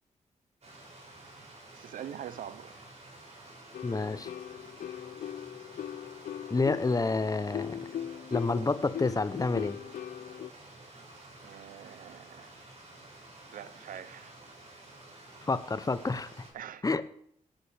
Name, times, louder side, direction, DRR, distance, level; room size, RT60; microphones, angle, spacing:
Stream, 0.6-16.5, right 2 dB, 50° right, 6.5 m, -51 dB
voice 1, 1.7-2.7 11.4-12.6 13.5-14.3 16.5-16.8, right 9 dB, 80° right, 0.6 m, -44 dB
sound 1, 3.7-10.5, left 10 dB, 75° left, 0.5 m, -40 dB
voice 2, 3.8-4.3 6.5-7.8 8.3-9.8 15.5-16.5 16.8-17.0, left 3 dB, 25° left, 0.7 m, -29 dB
17.0 x 11.5 x 3.4 m
cardioid pair, 70°, 14 cm